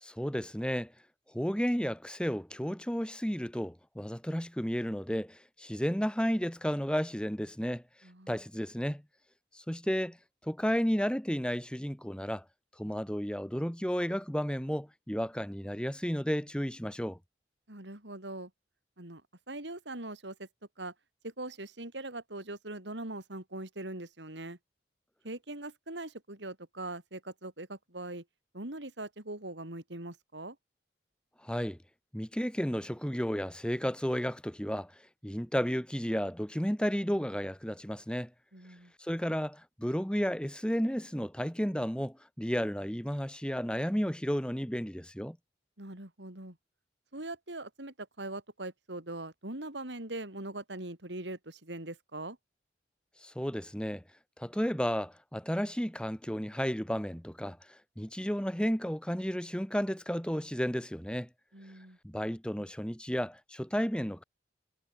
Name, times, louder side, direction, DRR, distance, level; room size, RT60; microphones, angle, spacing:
voice 1, 0.0-0.9 1.3-7.8 8.3-9.0 9.5-10.2 10.4-12.4 12.8-17.2 31.4-31.8 32.1-34.9 35.2-38.3 39.0-45.4 53.2-54.0 54.4-61.3 62.0-64.2, equal, 5° left, 1.9 m, -32 dB
voice 2, 8.0-8.4 17.7-18.5 19.0-19.2 19.5-20.5 20.8-20.9 21.2-24.6 25.2-28.2 28.5-30.6 38.5-38.9 45.8-46.6 47.1-52.4 61.5-62.0, right 2 dB, 85° right, 4.3 m, -41 dB
head